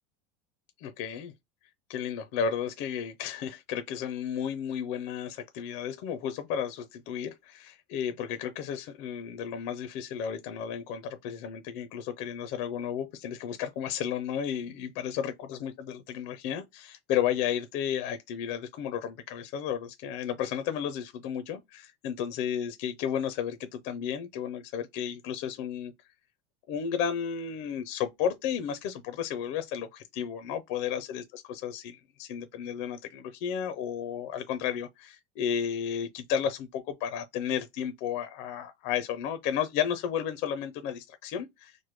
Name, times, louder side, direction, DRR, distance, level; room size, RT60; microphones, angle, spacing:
voice 1, 0.8-1.3 1.9-25.9 26.7-41.8, left 8 dB, 55° left, 0.5 m, -33 dB
3.1 x 2.1 x 3.2 m
cardioid pair, 160°, 15 cm